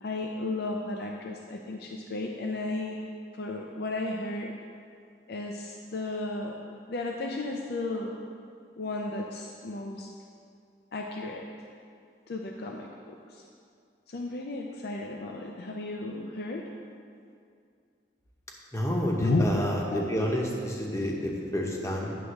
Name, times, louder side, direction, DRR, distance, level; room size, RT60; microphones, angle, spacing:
voice 1, 0.0-3.0 3.3-4.5 5.3-6.6 6.9-8.2 8.8-10.1 10.9-11.5 12.3-13.4 14.1-16.6 19.2-19.6 19.9-20.0, left 2 dB, 60° left, 1 dB, 0.5 m, -33 dB
voice 2, 18.7-22.2, equal, 15° left, -1 dB, 0.9 m, -29 dB
9.6 x 3.5 x 6.4 m, 2.3 s
head